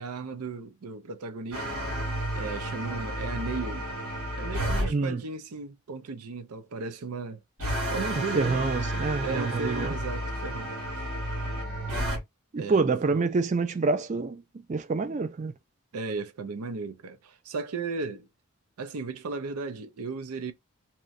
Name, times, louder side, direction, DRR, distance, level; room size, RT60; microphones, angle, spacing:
voice 1, 0.0-1.8 2.3-3.9 4.4-7.4 7.9-8.6 9.2-10.7 12.6-13.2 15.9-18.3 18.8-20.5, right 4 dB, 90° right, 0.5 m, -35 dB
sound 1, 1.5-4.9 7.6-12.2, right 1 dB, 70° right, 1.6 m, -31 dB
voice 2, 4.9-5.2 8.1-9.9 12.5-14.4 14.7-15.5, right 3 dB, 30° right, 0.3 m, -27 dB
2.9 x 2.1 x 2.4 m
head